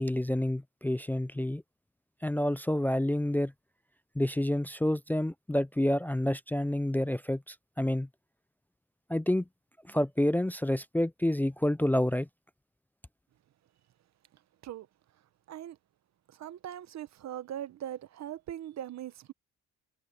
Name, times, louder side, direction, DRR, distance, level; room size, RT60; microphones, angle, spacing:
voice 1, 0.0-1.6 2.2-3.5 4.2-8.1 9.1-9.5 9.9-12.3, left 1 dB, 5° left, 0.5 m, -28 dB
voice 2, 16.3-19.3, right 11 dB, 65° right, 0.9 m, -40 dB
cardioid pair, 90°, 30 cm